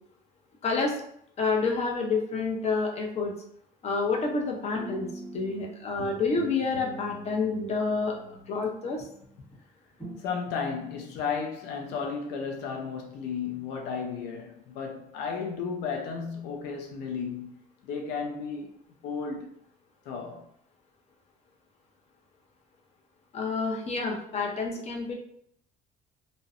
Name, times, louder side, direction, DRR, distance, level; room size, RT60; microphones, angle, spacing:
voice 1, 0.6-1.0 1.4-3.3 3.8-9.1 23.3-25.1, left 4 dB, 40° left, 0.6 m, -29 dB
sound 1, 4.7-5.6 6.0-9.6 10.0-10.2, equal, 10° left, 1.3 m, -43 dB
voice 2, 10.2-18.7 19.0-19.6 20.1-20.5, left 5 dB, 90° left, 0.4 m, -34 dB
2.5 x 2.0 x 2.4 m
cardioid pair, 110°, 17 cm